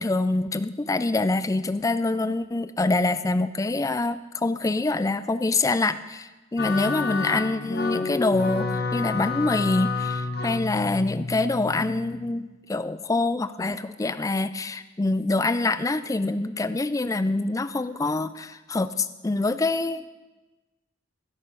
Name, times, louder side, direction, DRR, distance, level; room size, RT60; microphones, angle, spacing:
voice 1, 0.0-20.1, left 2 dB, 15° left, 13 dB, 0.3 m, -25 dB
sound 1, 6.6-12.3, left 4 dB, 50° left, 0.8 m, -29 dB
12.5 x 11.0 x 5.5 m, 1.2 s
head